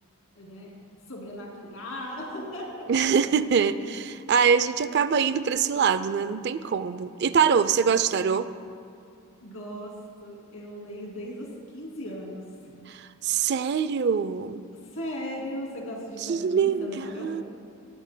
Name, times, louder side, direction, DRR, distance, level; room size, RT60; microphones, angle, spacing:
voice 1, 0.4-0.8 1.1-2.7 9.4-9.9 10.2-12.7 14.9-17.3, equal, 70° left, -2 dB, 2.7 m, -37 dB
voice 2, 2.9-8.5 12.9-14.7 16.2-17.4, right 6 dB, 50° right, 13 dB, 0.4 m, -24 dB
18.0 x 15.5 x 2.2 m, 2.4 s
head